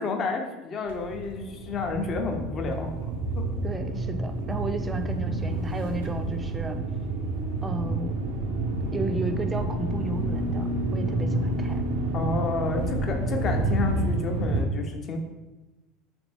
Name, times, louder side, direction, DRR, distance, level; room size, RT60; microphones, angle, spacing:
voice 1, 0.0-3.5 12.1-15.2, left 3 dB, 40° left, 4 dB, 0.5 m, -30 dB
sound 1, 0.9-14.6, right 2 dB, 85° right, 0.5 m, -29 dB
voice 2, 3.6-6.8 7.6-8.1 8.9-11.8, right 2 dB, 20° right, 7 dB, 0.3 m, -33 dB
2.9 x 2.5 x 3.3 m, 1.1 s
hypercardioid pair, 85°, 0 cm